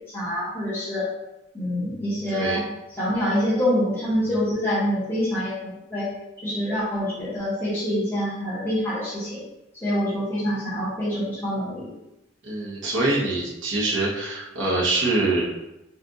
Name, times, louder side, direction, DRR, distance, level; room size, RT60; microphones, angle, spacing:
voice 1, 0.1-1.1 1.5-2.6 3.0-6.1 6.4-9.4 9.7-11.9, equal, 10° left, -10 dB, 1.4 m, -26 dB
voice 2, 2.3-2.6 12.4-15.4, right 2 dB, 85° right, -5 dB, 1.1 m, -24 dB
4.3 x 2.5 x 3.7 m, 0.93 s
head